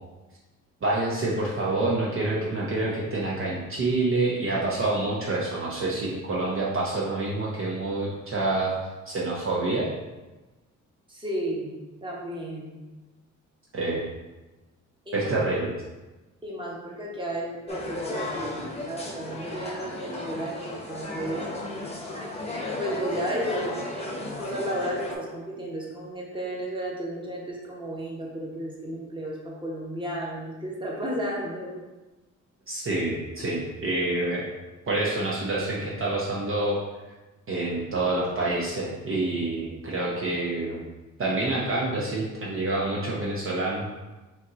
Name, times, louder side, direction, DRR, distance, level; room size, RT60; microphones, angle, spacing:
voice 1, 0.8-8.7 9.1-9.9 13.7-14.0 15.1-15.7 32.7-34.5 34.9-36.8 37.5-40.8 41.2-44.0, right 2 dB, 45° right, -4 dB, 0.9 m, -27 dB
voice 2, 11.1-11.7 12.0-12.7 15.1-15.3 16.4-21.4 22.8-31.7, right 1 dB, 15° right, -4 dB, 1.2 m, -33 dB
sound 1, 17.7-25.1, left 2 dB, 20° left, 0.9 m, -34 dB
4.1 x 3.1 x 3.8 m, 1.1 s
cardioid pair, 90°, 30 cm